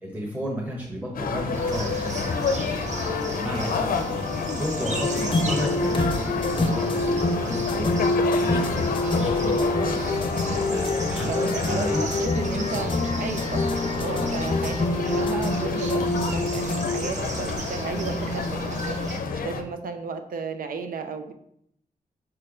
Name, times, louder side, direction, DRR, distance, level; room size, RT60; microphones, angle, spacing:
voice 1, 0.0-2.5 3.2-3.9 4.6-7.9 8.3-10.1 10.6-11.3 11.6-12.0, equal, 10° right, -3 dB, 1.1 m, -33 dB
sound 1, 1.1-19.6, left 5 dB, 90° left, 0.6 m, -30 dB
sound 2, 1.5-19.2, right 2 dB, 55° right, 0.9 m, -35 dB
voice 2, 3.0-3.4 10.0-10.7 11.2-19.0 19.3-21.3, right 5 dB, 80° right, 7 dB, 0.7 m, -34 dB
sound 3, 4.9-17.0, left 2 dB, 35° left, 0.4 m, -26 dB
5.5 x 4.5 x 5.0 m, 0.74 s
wide cardioid pair, 155°, 14 cm